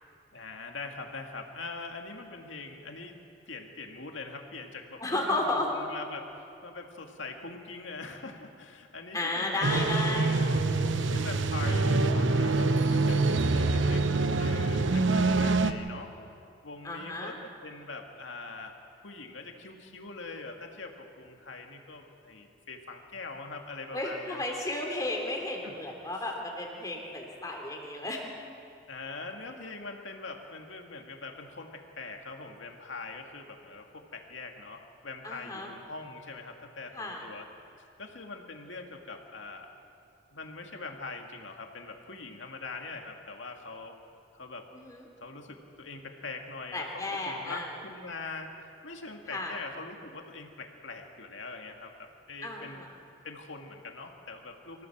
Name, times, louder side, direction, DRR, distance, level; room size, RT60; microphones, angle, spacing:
voice 1, 0.3-3.2 3.5-10.6 11.1-14.0 14.4-16.1 16.6-24.4 25.6-25.7 28.9-37.5 38.0-39.7 40.3-44.0 44.3-44.7 45.2-52.9 53.2-54.9, left 3 dB, 80° left, 3 dB, 2.1 m, -43 dB
voice 2, 5.0-5.7 9.1-10.4 16.8-17.4 23.9-28.2 35.2-35.7 36.9-37.2 44.7-45.1 46.7-47.7 49.3-49.6 52.4-52.9, left 2 dB, 20° left, 0 dB, 3.1 m, -33 dB
sound 1, 9.6-15.7, right 3 dB, 80° right, 0.9 m, -25 dB
24.5 x 15.5 x 7.3 m, 2.7 s
head